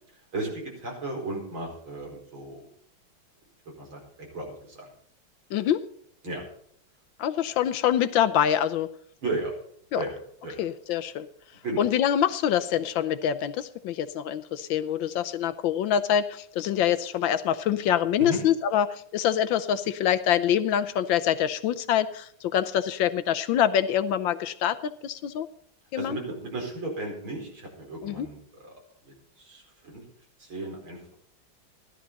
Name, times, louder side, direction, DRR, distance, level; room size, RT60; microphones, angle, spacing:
voice 1, 0.3-2.7 3.8-4.0 4.3-4.9 6.2-6.4 9.2-9.5 9.9-10.1 10.4-10.6 11.6-11.8 18.2-18.4 26.0-28.7 29.4-30.0 30.4-31.1, right 2 dB, 75° right, 0 dB, 5.5 m, -34 dB
voice 2, 7.2-8.9 9.9-10.0 10.6-11.3 11.8-25.5 25.9-26.2 28.0-28.3, left 10 dB, 75° left, 13 dB, 1.3 m, -25 dB
15.0 x 12.5 x 4.1 m, 0.64 s
omnidirectional pair, 2.3 m